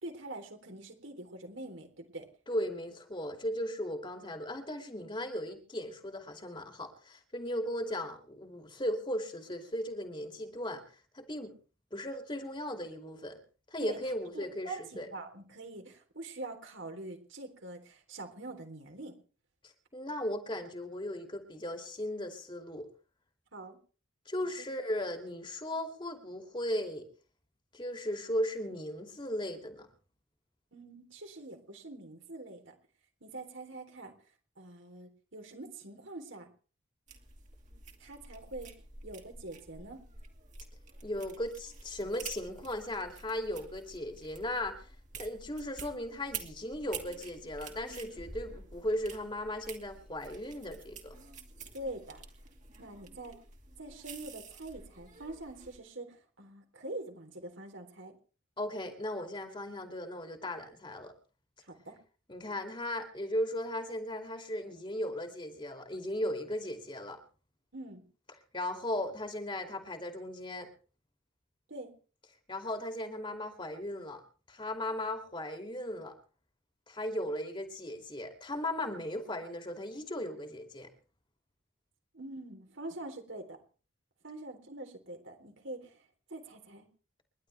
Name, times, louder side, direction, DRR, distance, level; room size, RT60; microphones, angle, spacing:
voice 1, 0.0-2.3 13.8-14.0 14.3-19.1 23.5-23.8 24.4-24.7 30.7-32.8 33.2-34.1 34.6-36.5 38.0-38.7 39.0-40.0 51.7-52.2 52.8-53.4 53.8-58.2 61.6-62.0 67.7-68.1 71.7-71.9 82.1-83.6 84.2-86.0 86.3-86.9, right 2 dB, 70° right, 4 dB, 3.7 m, -44 dB
voice 2, 2.5-10.8 11.1-11.5 11.9-13.4 13.7-15.1 19.6-22.9 24.3-27.1 27.7-29.9 41.0-44.9 45.2-51.2 58.6-61.1 62.3-67.2 68.5-70.7 72.5-74.2 74.5-76.1 76.9-80.9, left 1 dB, 25° left, 4 dB, 2.6 m, -37 dB
sound 1, 37.1-55.8, right 5 dB, 35° right, 2.5 m, -49 dB
29.5 x 11.5 x 3.4 m, 0.38 s
head